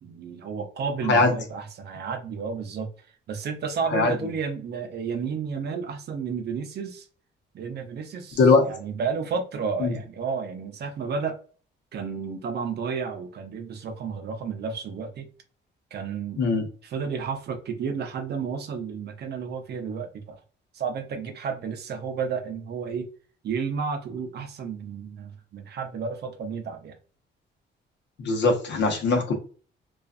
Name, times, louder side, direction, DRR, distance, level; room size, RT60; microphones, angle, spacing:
voice 1, 0.0-2.9 3.3-7.1 7.5-11.4 11.9-15.3 15.9-16.4 16.8-20.4 20.7-23.1 23.4-27.0, right 6 dB, 55° right, 0.6 m, -32 dB
voice 2, 8.4-8.7 9.8-9.9 16.4-16.6 28.2-29.3, left 3 dB, 65° left, 0.8 m, -20 dB
2.4 x 2.4 x 2.3 m
cardioid pair, 90°, 20 cm